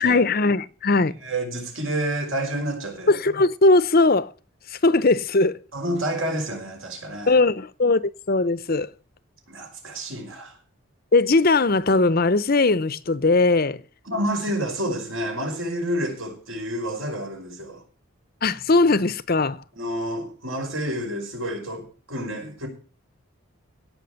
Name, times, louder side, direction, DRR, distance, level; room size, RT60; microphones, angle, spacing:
voice 1, 0.0-1.1 3.1-4.3 4.7-5.6 7.3-8.0 8.3-8.9 11.1-13.8 18.4-19.6, left 3 dB, 45° left, 0.7 m, -19 dB
voice 2, 1.0-3.1 5.7-7.4 9.5-10.6 14.1-17.8 19.8-22.7, right 1 dB, 70° right, 5.6 m, -29 dB
17.5 x 6.0 x 7.0 m
head